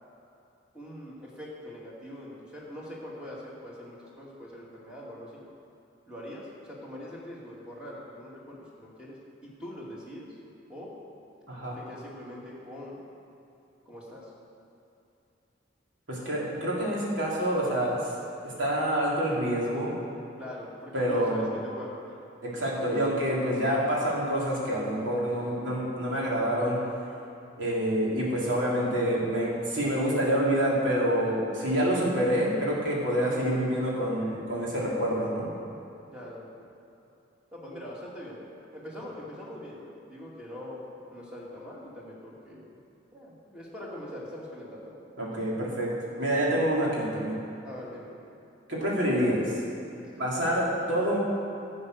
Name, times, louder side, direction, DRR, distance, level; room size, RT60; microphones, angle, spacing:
voice 1, 0.7-5.4 6.1-9.2 9.4-10.4 10.7-10.9 11.7-13.0 13.9-14.3 20.4-22.2 36.1-36.5 37.5-42.7 43.1-45.0 47.6-48.1 49.9-50.1, left 1 dB, 5° right, -6 dB, 2.3 m, -43 dB
voice 2, 16.1-18.0 18.4-20.0 20.9-21.5 22.4-26.8 27.6-35.5 45.2-47.4 48.7-49.6 50.2-51.2, equal, 80° right, -5 dB, 3.1 m, -27 dB
12.0 x 7.9 x 6.5 m, 2.8 s
head